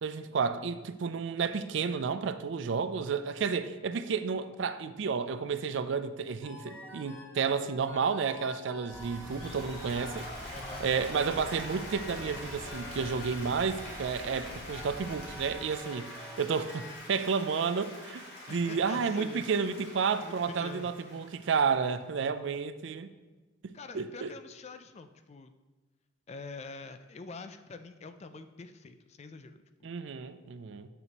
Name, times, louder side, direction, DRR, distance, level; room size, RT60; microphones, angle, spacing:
voice 1, 0.0-10.3 10.8-23.1 23.6-24.3 29.8-30.9, right 5 dB, 65° right, 12 dB, 0.4 m, -31 dB
sound 1, 6.4-17.0, left 1 dB, 10° left, 1.0 m, -48 dB
sound 2, 8.9-15.5, equal, 15° right, 1.3 m, -47 dB
Applause, 9.0-22.2, left 1 dB, 60° left, 2.6 m, -45 dB
voice 2, 10.5-10.9 18.5-19.4 20.2-20.9 23.7-25.5 26.3-30.0, left 3 dB, 35° left, 9 dB, 0.4 m, -45 dB
8.3 x 6.7 x 2.9 m, 1.2 s
head